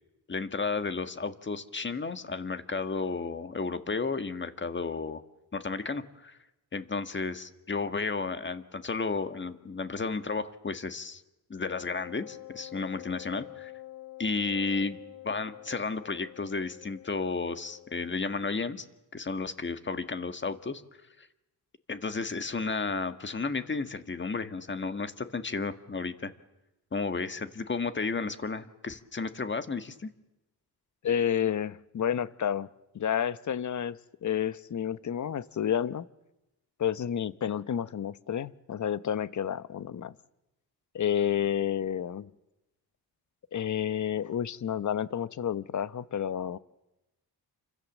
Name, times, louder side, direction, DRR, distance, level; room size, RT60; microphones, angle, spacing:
voice 1, 0.3-5.2 5.5-6.4 6.7-11.2 11.5-13.7 14.2-18.8 19.1-20.8 21.2-21.3 21.9-26.3 26.9-30.1, left 4 dB, 30° left, 9 dB, 1.6 m, -33 dB
Wind instrument woodwind instrument, 11.6-18.2, left 15 dB, 90° left, 1.4 m, -47 dB
voice 2, 31.0-32.7 32.9-36.1 36.8-40.1 40.9-42.3 43.5-46.6, left 9 dB, 45° left, 15 dB, 0.9 m, -30 dB
29.0 x 25.0 x 7.3 m, 0.97 s
cardioid pair, 120°, 40 cm